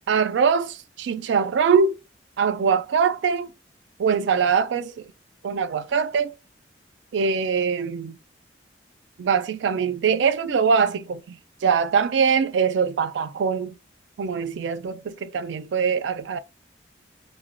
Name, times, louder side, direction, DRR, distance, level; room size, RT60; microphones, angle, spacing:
voice 1, 0.1-2.0 2.4-3.5 4.0-4.9 5.4-6.3 7.1-8.2 9.2-13.7 14.2-16.4, right 6 dB, 80° right, 0.3 m, -22 dB
2.9 x 2.1 x 2.4 m
head